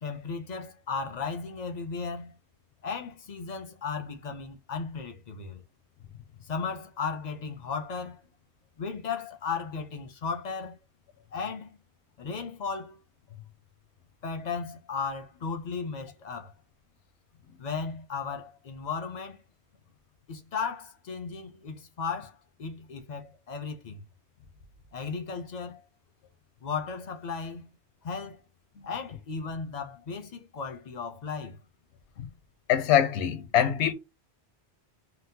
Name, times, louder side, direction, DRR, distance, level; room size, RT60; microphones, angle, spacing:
voice 1, 0.0-2.3 2.8-5.6 6.4-8.2 8.8-10.8 11.3-11.8 12.2-13.0 14.2-16.5 17.6-19.4 20.3-24.0 24.9-25.8 26.6-27.7 28.0-28.4 28.8-31.6, left 5 dB, 55° left, 0.5 m, -35 dB
voice 2, 32.7-33.9, left 9 dB, 85° left, 0.9 m, -23 dB
3.9 x 2.0 x 2.6 m
omnidirectional pair, 1.1 m